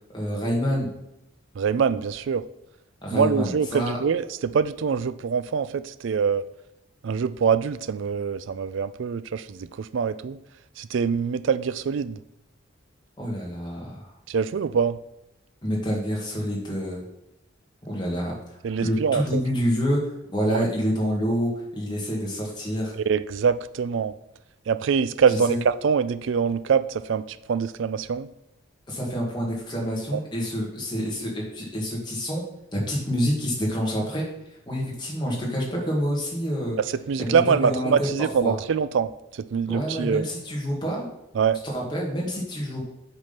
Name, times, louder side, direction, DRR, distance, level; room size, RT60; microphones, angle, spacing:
voice 1, 0.1-0.9 3.0-4.0 13.2-14.1 15.6-17.0 17.9-22.9 25.3-25.6 28.9-32.4 32.7-34.2 34.7-36.8 37.2-38.1 38.4-38.5 39.7-41.1 41.6-42.8, equal, 20° left, -3 dB, 1.9 m, -27 dB
voice 2, 1.6-2.4 3.1-6.5 7.0-10.4 10.8-12.2 14.3-15.0 18.6-19.4 20.5-20.6 22.9-24.1 24.7-28.3 30.1-30.2 36.8-40.2 41.3-41.6, right 6 dB, 70° right, 14 dB, 0.4 m, -24 dB
7.9 x 3.6 x 5.7 m, 0.86 s
head